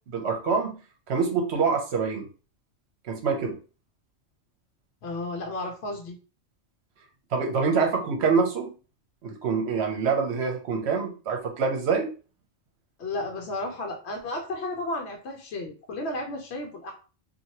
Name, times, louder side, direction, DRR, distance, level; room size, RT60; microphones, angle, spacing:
voice 1, 0.1-0.7 1.1-2.3 3.0-3.6 7.3-8.7 9.2-12.1, right 5 dB, 65° right, 3 dB, 1.0 m, -25 dB
voice 2, 5.0-6.2 13.0-16.9, left 2 dB, 70° left, 1 dB, 0.9 m, -33 dB
3.0 x 2.5 x 2.8 m, 0.35 s
omnidirectional pair, 1.3 m